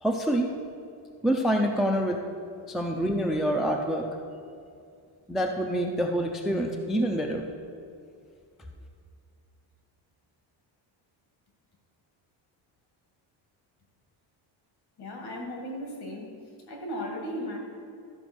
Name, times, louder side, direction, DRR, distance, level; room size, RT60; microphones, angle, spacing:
voice 1, 0.0-0.5 1.2-2.2 2.7-4.1 5.3-7.5, equal, ahead, 3 dB, 0.4 m, -26 dB
voice 2, 15.0-16.4 16.7-17.6, equal, 55° left, 1 dB, 2.2 m, -36 dB
13.0 x 5.0 x 6.2 m, 2.4 s
cardioid pair, 155°, 46 cm